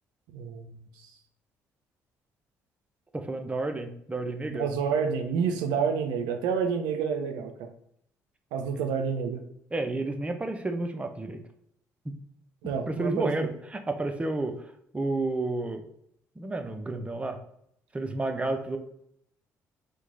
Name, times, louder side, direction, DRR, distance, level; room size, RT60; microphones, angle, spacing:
voice 1, 0.3-0.8 4.5-7.7 8.5-9.4 12.6-13.3, right 6 dB, 70° right, 5 dB, 0.4 m, -29 dB
voice 2, 3.1-4.7 9.7-11.4 12.0-12.1 12.9-15.9 16.4-17.4 17.9-18.8, right 2 dB, 15° right, 6 dB, 0.5 m, -31 dB
3.0 x 2.1 x 3.6 m, 0.71 s
hypercardioid pair, 50°, 8 cm